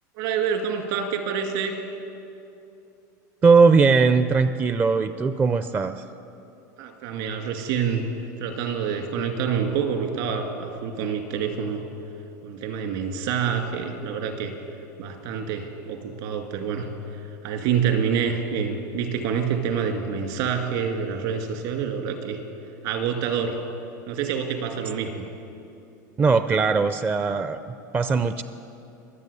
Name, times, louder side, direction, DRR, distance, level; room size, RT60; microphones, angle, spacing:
voice 1, 0.2-1.8 6.8-8.1 8.4-11.8 12.4-14.5 15.0-22.4 22.8-23.6 24.1-25.3, right 7 dB, 65° right, 5 dB, 2.3 m, -27 dB
voice 2, 3.4-6.0 26.2-28.4, right 4 dB, 20° right, 11 dB, 0.4 m, -20 dB
22.5 x 8.0 x 6.9 m, 2.7 s
supercardioid pair, 115°, 10 cm